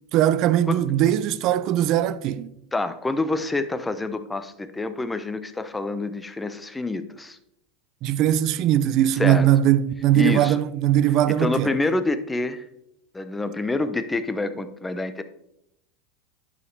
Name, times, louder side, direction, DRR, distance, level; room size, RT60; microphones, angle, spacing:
voice 1, 0.1-2.5 8.0-11.7, right 11 dB, 50° right, 0.4 m, -20 dB
voice 2, 2.7-7.4 9.1-9.5 10.1-10.6 11.3-12.7 13.1-15.2, left 2 dB, 10° left, 0.5 m, -27 dB
11.0 x 5.0 x 3.3 m
supercardioid pair, 125°, 0 cm